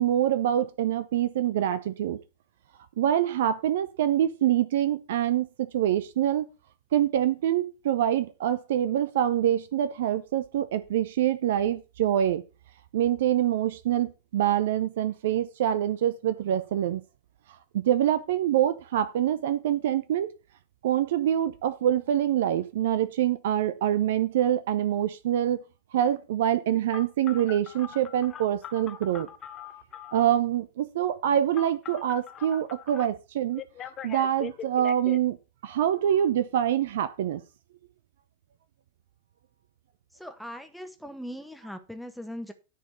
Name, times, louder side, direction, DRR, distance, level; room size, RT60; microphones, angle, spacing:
voice 1, 0.0-2.2 3.0-6.5 6.9-12.4 12.9-17.0 17.7-20.3 20.8-25.6 25.9-29.3 30.1-33.6 34.0-35.4 35.6-37.4, right 11 dB, 55° right, 0.6 m, -25 dB
Telephone, 26.9-30.3 31.5-33.1 33.6-35.2, left 9 dB, 30° left, 0.8 m, -41 dB
voice 2, 40.2-42.5, equal, ahead, 1.2 m, -40 dB
10.0 x 4.2 x 6.8 m
figure-of-eight pair, 90°, 0 cm